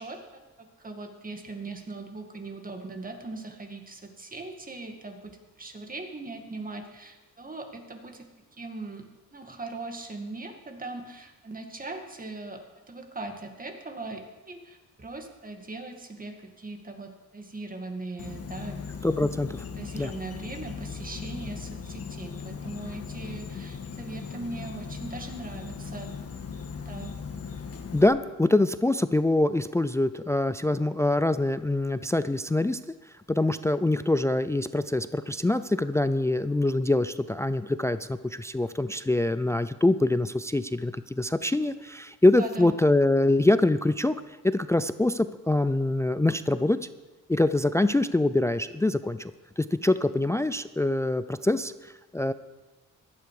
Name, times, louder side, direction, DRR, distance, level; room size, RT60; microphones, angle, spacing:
voice 1, 0.0-8.3 8.5-18.8 19.8-26.2 26.9-27.1 42.4-42.7, right 2 dB, 25° right, 4 dB, 2.1 m, -40 dB
Insect, 18.2-28.1, left 5 dB, 50° left, 1.6 m, -38 dB
voice 2, 19.0-19.6 20.0-20.1 27.9-32.8 33.3-44.1 44.4-46.8 47.3-52.3, left 2 dB, 10° left, 13 dB, 0.4 m, -24 dB
15.5 x 11.5 x 4.8 m, 1.2 s
cardioid pair, 90°, 32 cm